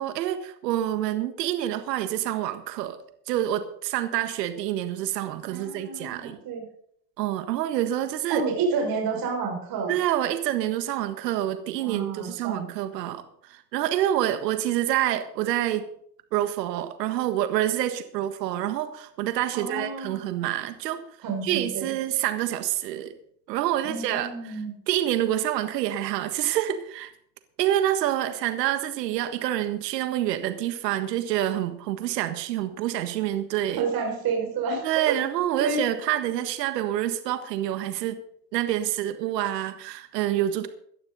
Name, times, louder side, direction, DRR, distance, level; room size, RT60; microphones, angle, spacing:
voice 1, 0.0-3.0 3.3-6.4 7.2-8.4 9.9-15.9 16.3-21.0 21.4-23.1 23.5-24.3 24.9-27.1 27.6-33.8 34.8-38.2 38.5-40.7, right 12 dB, 80° right, 9 dB, 1.6 m, -27 dB
voice 2, 5.5-6.7 8.3-10.0 11.8-12.6 19.5-20.2 21.2-21.9 23.8-24.7 33.8-35.2 35.6-35.8, right 5 dB, 45° right, 1 dB, 6.1 m, -29 dB
17.5 x 12.0 x 4.1 m, 0.66 s
supercardioid pair, 110°, 48 cm